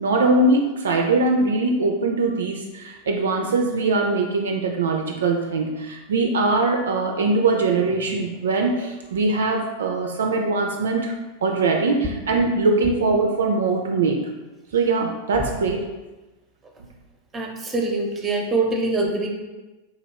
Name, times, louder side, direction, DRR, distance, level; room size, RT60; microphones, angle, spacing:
voice 1, 0.0-11.1 11.4-14.2 14.7-15.9, right 3 dB, 65° right, 2 dB, 0.3 m, -21 dB
voice 2, 17.3-19.3, right 2 dB, 15° right, 1 dB, 0.6 m, -24 dB
3.8 x 3.0 x 2.8 m, 1.1 s
figure-of-eight pair, 90°, 0 cm